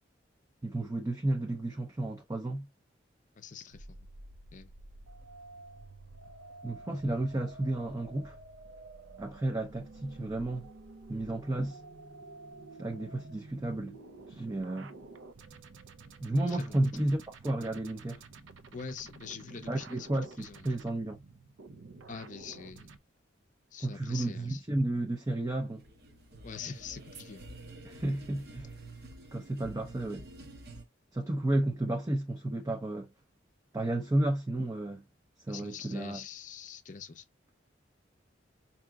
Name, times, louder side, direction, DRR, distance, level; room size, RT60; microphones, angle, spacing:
voice 1, 0.6-2.7 6.6-8.4 9.2-10.7 11.1-11.8 12.8-14.0 14.3-14.9 16.2-17.2 17.4-18.2 19.7-21.2 23.8-25.8 27.9-28.7 29.3-30.3 31.1-33.1 33.7-35.0 35.5-36.2, right 1 dB, 15° right, 0.5 m, -32 dB
voice 2, 3.4-4.1 4.5-4.7 16.5-16.8 18.7-20.7 22.1-22.9 23.7-24.6 26.4-27.5 35.5-37.2, left 6 dB, 40° left, 0.5 m, -44 dB
sound 1, 3.7-23.0, right 3 dB, 80° right, 0.6 m, -50 dB
sound 2, 25.7-30.8, right 2 dB, 55° right, 0.8 m, -49 dB
4.8 x 2.8 x 2.2 m
head